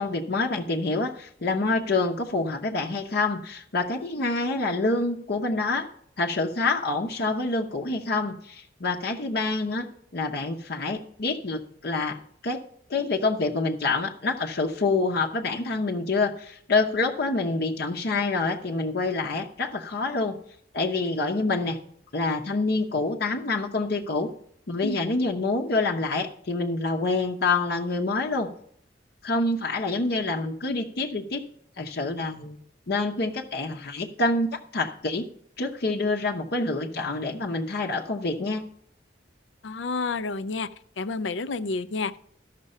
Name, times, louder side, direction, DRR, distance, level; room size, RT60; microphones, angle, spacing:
voice 1, 0.0-5.9 6.2-9.9 10.1-12.2 12.4-12.6 12.9-20.4 20.7-21.8 22.1-24.3 24.7-28.5 29.2-31.4 31.8-32.6 32.9-35.3 35.6-38.6, left 3 dB, 60° left, 0 dB, 0.8 m, -27 dB
voice 2, 39.6-40.7 41.0-42.2, left 3 dB, 85° left, 15 dB, 0.5 m, -29 dB
13.0 x 6.0 x 5.4 m, 0.65 s
head